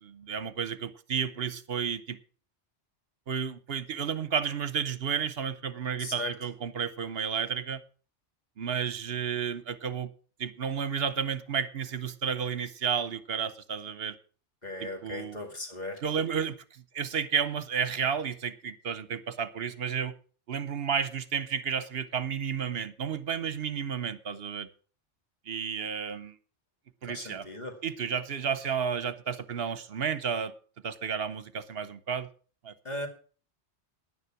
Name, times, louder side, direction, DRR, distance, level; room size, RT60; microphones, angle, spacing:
voice 1, 0.0-2.2 3.3-7.8 8.6-10.1 10.4-14.2 14.8-15.4 16.0-16.6 16.9-20.1 20.5-24.7 25.5-26.3 27.0-27.5 27.8-30.5 30.8-32.3 32.6-32.7, right 7 dB, 60° right, 1.1 m, -32 dB
voice 2, 6.0-6.3 14.6-16.0 27.1-27.8 32.8-33.1, left 2 dB, 35° left, 2.3 m, -37 dB
10.5 x 9.8 x 5.9 m
omnidirectional pair, 1.2 m